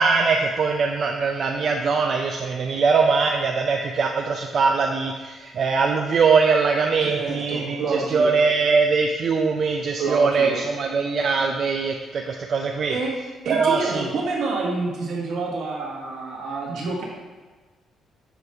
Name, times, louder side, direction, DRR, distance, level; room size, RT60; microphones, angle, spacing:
voice 1, 0.0-13.0 13.5-14.1, right 4 dB, 55° right, 2 dB, 0.5 m, -22 dB
voice 2, 7.0-8.3 10.0-10.6 12.9-13.1 13.4-17.0, right 3 dB, 75° right, -3 dB, 1.7 m, -28 dB
6.9 x 3.1 x 5.5 m, 1.3 s
cardioid pair, 90°, 0 cm